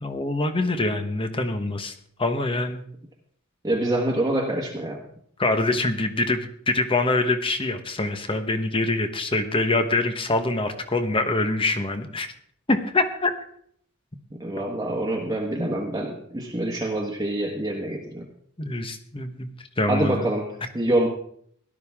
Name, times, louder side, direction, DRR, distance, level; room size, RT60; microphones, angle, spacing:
voice 1, 0.0-1.9 2.2-2.8 5.4-12.3 12.7-13.3 18.6-19.5 19.8-20.3, left 2 dB, 25° left, 8 dB, 1.1 m, -24 dB
voice 2, 3.6-5.0 14.3-18.3 19.9-21.1, right 1 dB, 15° right, -2 dB, 1.4 m, -26 dB
17.0 x 12.0 x 3.6 m, 0.64 s
head